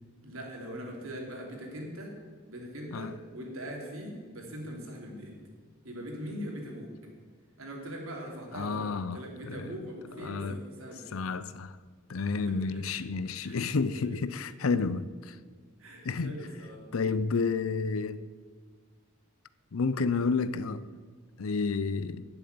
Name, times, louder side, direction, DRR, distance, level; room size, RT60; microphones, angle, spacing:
voice 1, 0.2-2.1 2.4-5.4 5.8-6.9 7.6-11.2 12.3-12.8 13.4-13.6 13.9-14.2 15.8-16.8 20.3-20.5, equal, 85° right, 2.8 m, -41 dB
voice 2, 8.5-9.7 10.2-10.6 11.1-11.7 12.1-15.4 16.0-16.4 16.9-18.2 19.7-20.8 21.4-22.3, left 4 dB, 85° left, 0.6 m, -30 dB
12.0 x 7.0 x 9.4 m
head